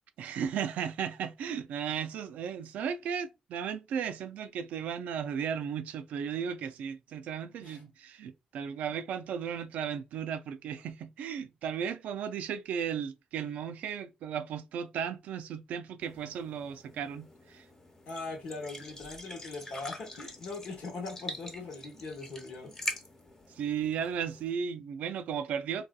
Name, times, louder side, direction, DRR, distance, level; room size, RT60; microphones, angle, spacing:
voice 1, 0.2-17.7 23.5-25.9, right 7 dB, 85° right, 0.3 m, -35 dB
sound 1, 16.0-24.5, left 1 dB, 25° left, 1.0 m, -44 dB
voice 2, 18.1-22.8, left 3 dB, 80° left, 1.0 m, -40 dB
2.8 x 2.3 x 2.2 m
cardioid pair, 60°, 2 cm